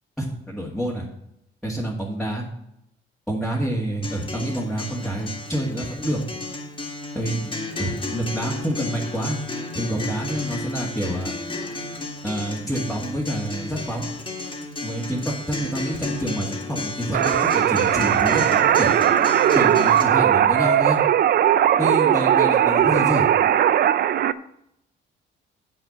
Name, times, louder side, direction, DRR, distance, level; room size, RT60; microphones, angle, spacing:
voice 1, 0.2-1.1 1.6-2.5 3.3-6.2 7.1-7.5 7.8-9.4 9.7-11.3 12.2-14.1 14.8-18.9 19.5-21.0 21.8-23.3, right 1 dB, ahead, -5 dB, 2.0 m, -27 dB
Acoustic guitar, 4.0-20.0, left 2 dB, 25° left, 2.0 m, -33 dB
sound 1, 17.1-24.3, right 10 dB, 50° right, 0.5 m, -18 dB
9.3 x 5.0 x 7.3 m, 0.77 s
cardioid pair, 125°, 21 cm